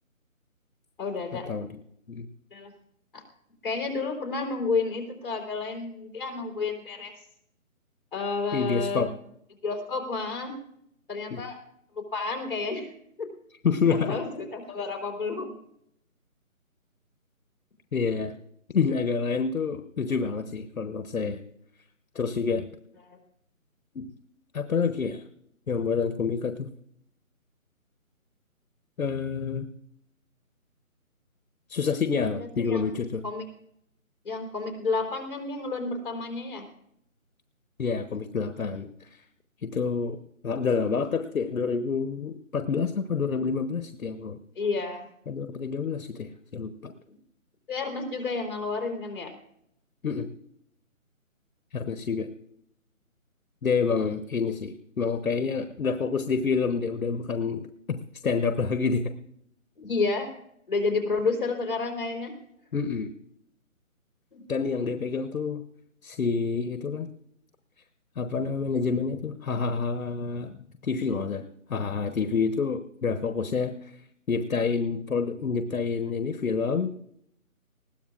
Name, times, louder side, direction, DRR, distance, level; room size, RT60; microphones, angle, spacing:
voice 1, 1.0-1.5 2.5-2.7 3.1-3.2 3.6-7.1 8.1-9.1 9.6-10.6 11.1-11.6 12.0-12.9 13.2-13.3 13.9-15.5 23.1-23.2 32.4-32.9 33.2-33.4 34.2-36.7 44.6-45.0 47.7-49.3 59.8-60.3 60.7-62.4 64.3-64.4, left 4 dB, 40° left, 1 dB, 3.6 m, -30 dB
voice 2, 8.5-9.1 11.3-11.4 13.6-14.2 17.9-18.3 18.7-21.4 22.1-22.6 23.9-24.1 24.5-25.2 25.7-26.7 29.0-29.7 31.7-33.2 37.8-38.9 39.6-40.2 40.4-44.4 45.3-46.9 50.0-50.3 51.7-52.3 53.6-57.6 57.9-58.0 58.2-59.1 62.7-63.1 64.5-65.6 66.0-67.1 68.2-73.9 74.3-76.9, left 5 dB, 75° left, 8 dB, 1.1 m, -28 dB
20.5 x 16.5 x 2.4 m, 0.73 s
hypercardioid pair, 175°, 42 cm